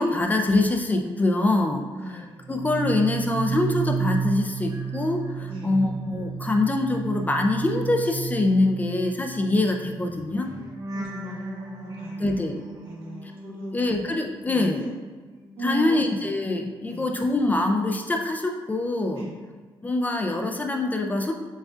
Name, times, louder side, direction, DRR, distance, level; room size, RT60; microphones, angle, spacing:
voice 1, 0.0-10.6 12.2-12.6 13.2-13.3 13.7-14.8 15.6-19.2 19.8-21.3, left 2 dB, 20° left, 3 dB, 0.3 m, -24 dB
voice 2, 1.9-2.5 5.5-5.8 10.9-12.4 12.8-13.7 14.4-14.9 15.6-16.2 16.8-17.1 19.1-19.3, equal, 80° right, -3 dB, 1.0 m, -36 dB
sound 1, 2.4-14.6 14.9-17.0 17.3-17.7, right 6 dB, 45° right, 0.6 m, -34 dB
6.1 x 2.3 x 2.4 m, 1.4 s
cardioid pair, 105°, 9 cm